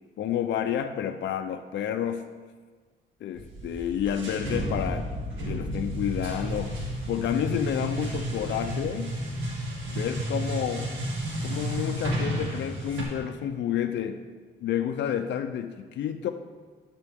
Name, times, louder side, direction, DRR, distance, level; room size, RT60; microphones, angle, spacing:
voice 1, 0.2-2.3 3.2-5.1 5.4-6.7 7.1-9.1 9.8-10.9 11.4-14.2 14.6-16.3, left 9 dB, 65° left, 6 dB, 0.5 m, -30 dB
sound 1, 3.4-13.0, right 1 dB, 90° right, 1.9 m, -32 dB
11.0 x 6.0 x 3.5 m, 1.4 s
cardioid pair, 90°, 20 cm